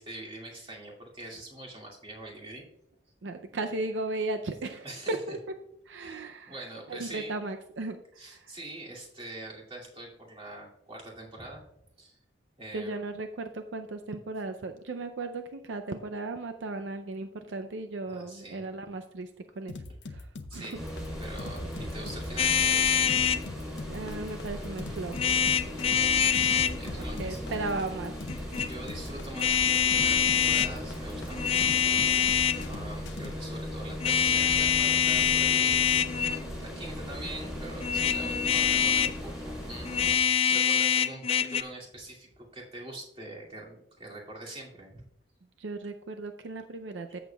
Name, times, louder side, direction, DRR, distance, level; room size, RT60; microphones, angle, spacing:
voice 1, 0.0-2.6 4.8-5.4 6.0-7.3 8.2-11.6 12.0-12.2 12.6-13.0 18.1-18.6 20.5-20.8 21.2-22.6 25.9-27.6 28.5-31.8 32.1-35.9 36.5-45.0, right 1 dB, 30° right, -3 dB, 2.4 m, -44 dB
voice 2, 3.2-5.4 5.9-8.5 12.7-19.3 19.6-19.7 20.1-20.8 23.9-25.6 26.9-28.5 45.6-47.2, right 2 dB, 80° right, 7 dB, 0.5 m, -36 dB
sound 1, 19.7-33.3, left 3 dB, 70° left, 0.7 m, -42 dB
sound 2, 20.7-40.2, left 1 dB, ahead, 3.4 m, -38 dB
sound 3, 22.4-23.4 25.1-26.8 28.3-28.7 29.4-30.7 31.3-32.7 34.0-36.5 37.8-39.2 39.9-41.6, left 8 dB, 30° left, 0.3 m, -25 dB
14.0 x 7.2 x 2.3 m, 0.79 s
head